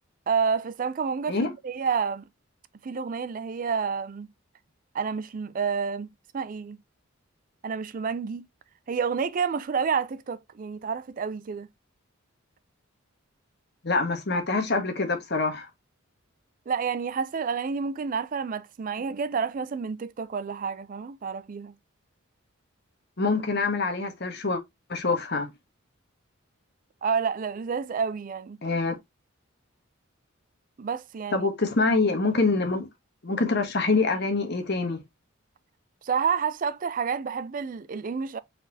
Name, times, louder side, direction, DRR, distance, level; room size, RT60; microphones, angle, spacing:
voice 1, 0.3-2.3 2.8-4.3 4.9-6.8 7.6-8.5 8.9-11.7 16.7-21.7 27.0-28.6 30.8-31.5 36.0-38.4, right 6 dB, 40° right, 0.4 m, -29 dB
voice 2, 13.8-15.7 23.2-24.6 24.9-25.5 28.6-29.0 31.3-32.9 33.2-35.0, left 3 dB, 50° left, 1.2 m, -25 dB
4.2 x 4.1 x 2.6 m
head